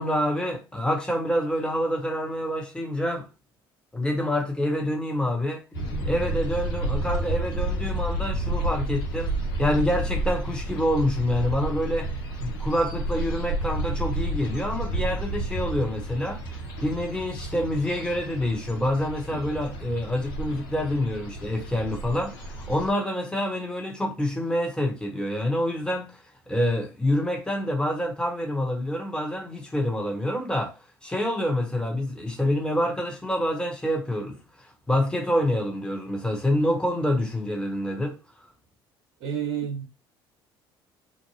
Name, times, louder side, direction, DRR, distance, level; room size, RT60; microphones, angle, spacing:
voice 1, 0.0-3.3 3.9-9.3 9.6-12.1 12.4-38.2, left 1 dB, 5° left, 1.0 m, -27 dB
sound 1, 5.7-22.9, right 1 dB, 80° left, 0.8 m, -31 dB
voice 2, 39.2-39.9, right 8 dB, 60° right, 0.8 m, -29 dB
2.6 x 2.2 x 3.1 m
hypercardioid pair, 60°, 12 cm